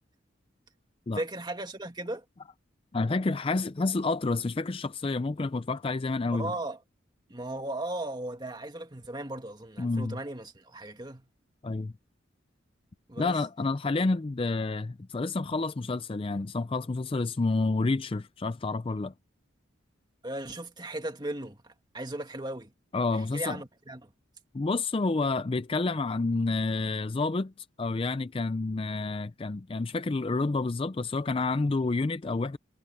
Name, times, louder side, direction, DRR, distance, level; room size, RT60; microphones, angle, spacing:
voice 1, 1.1-2.2 6.3-6.8 7.3-11.3 13.1-13.4 20.2-22.7 23.1-24.1, right 1 dB, 20° right, 2.1 m, -37 dB
voice 2, 2.9-6.5 9.8-10.2 11.6-11.9 13.2-19.1 22.9-23.6 24.5-27.5 27.8-32.6, left 3 dB, 25° left, 0.4 m, -29 dB
head